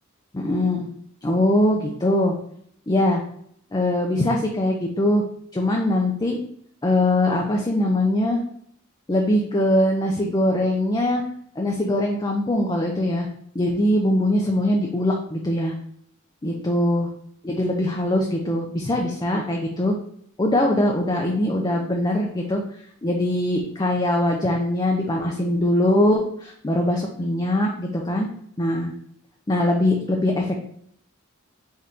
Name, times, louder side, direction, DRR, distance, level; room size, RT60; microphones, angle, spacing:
voice 1, 0.3-0.9 1.2-2.4 2.9-3.2 3.7-5.2 5.5-6.4 6.8-8.4 9.1-11.2 11.6-13.3 13.5-15.7 16.4-17.1 17.4-19.9 20.4-22.6 23.0-28.3 28.6-28.9 29.5-30.6, left 1 dB, 20° left, 0 dB, 0.4 m, -22 dB
3.6 x 2.5 x 4.2 m, 0.66 s
head